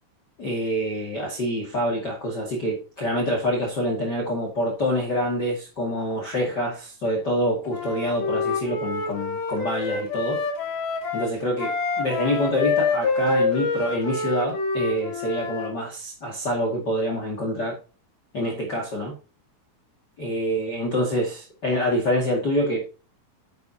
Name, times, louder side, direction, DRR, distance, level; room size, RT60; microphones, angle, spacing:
voice 1, 0.4-10.4 11.1-17.8 18.3-19.1 20.2-23.0, equal, 35° left, 2.4 m, -26 dB
Wind instrument woodwind instrument, 7.7-15.7, left 4 dB, 85° left, 4.3 m, -27 dB
11.0 x 8.3 x 2.9 m
omnidirectional pair, 4.2 m